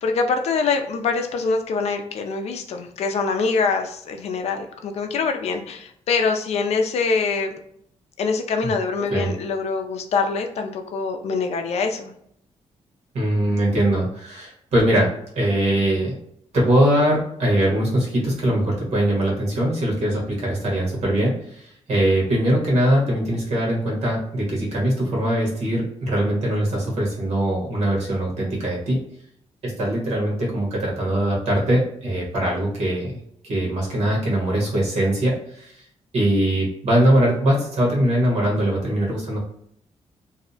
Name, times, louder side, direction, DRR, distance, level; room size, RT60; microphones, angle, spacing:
voice 1, 0.0-7.5 8.2-12.1, left 4 dB, 65° left, 5 dB, 0.4 m, -24 dB
voice 2, 13.1-15.1 15.3-16.1 16.5-29.0 29.6-33.2 33.4-35.7 36.1-39.4, right 1 dB, 70° right, -3 dB, 1.1 m, -21 dB
2.6 x 2.0 x 2.6 m, 0.69 s
cardioid pair, 130°, 12 cm